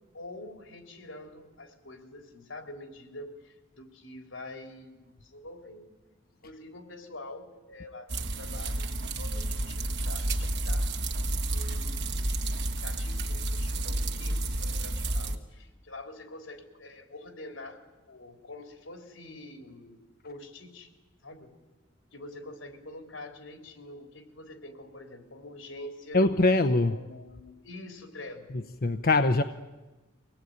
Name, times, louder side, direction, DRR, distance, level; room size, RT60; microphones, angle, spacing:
voice 1, 0.1-5.9 6.4-10.8 11.4-20.9 21.2-21.5 22.1-26.3 26.9-28.5, left 2 dB, 85° left, 3.6 m, -46 dB
sound 1, 8.1-15.4, right 1 dB, 60° right, 1.9 m, -30 dB
voice 2, 26.1-26.9 28.8-29.4, left 2 dB, 50° left, 0.8 m, -22 dB
24.0 x 18.5 x 9.5 m
head